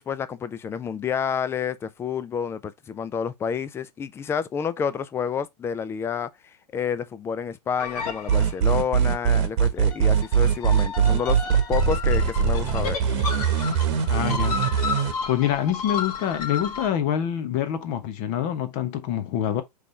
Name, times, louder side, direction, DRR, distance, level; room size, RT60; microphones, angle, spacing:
voice 1, 0.0-13.0, left 7 dB, 10° left, 0.4 m, -29 dB
sound 1, 7.8-8.8 9.8-16.9, left 5 dB, 60° left, 1.6 m, -32 dB
sound 2, 8.3-15.1, right 7 dB, 45° right, 1.1 m, -21 dB
voice 2, 14.1-14.6 15.3-19.6, left 10 dB, 35° left, 1.0 m, -26 dB
5.1 x 3.2 x 3.2 m
hypercardioid pair, 115°, 21 cm